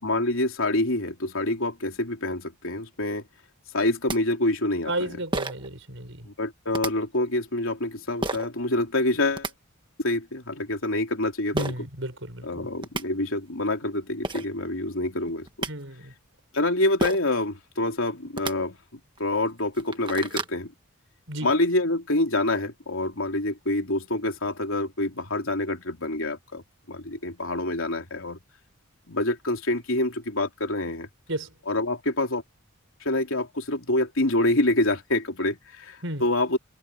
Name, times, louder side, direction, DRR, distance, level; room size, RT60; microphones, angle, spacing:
voice 1, 0.0-3.2 3.7-5.2 6.2-9.5 10.0-11.9 12.4-15.7 16.5-20.7 21.4-28.4 29.1-31.1 31.7-32.4 33.0-36.6, left 2 dB, 65° left, 3.4 m, -26 dB
sound 1, 3.8-3.9 4.1-4.2 5.3-5.7 6.7-6.9 8.2-8.5 9.1-9.5 11.6-11.7 12.5-12.6 12.8-13.0 13.9-14.0 14.2-14.5 15.3-15.7 17.0-17.3 18.3-18.5 19.2-19.3 19.7-20.6, right 2 dB, 20° right, 1.5 m, -30 dB
voice 2, 4.9-6.3 11.5-12.7 15.7-16.1 21.3-21.5 31.3-31.5 36.0-36.2, right 1 dB, 60° right, 7.0 m, -33 dB
head